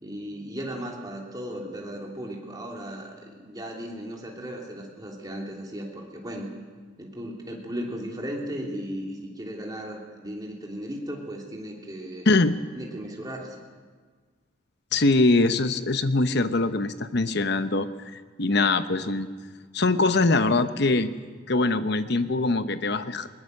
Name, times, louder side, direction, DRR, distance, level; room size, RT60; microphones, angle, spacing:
voice 1, 0.0-6.5 7.0-12.3 12.7-13.6, equal, 20° right, -1 dB, 3.1 m, -36 dB
voice 2, 12.3-12.6 14.9-19.3 19.7-21.1 21.5-23.3, left 2 dB, 55° left, 10 dB, 0.9 m, -23 dB
21.0 x 19.5 x 6.6 m, 1.5 s
head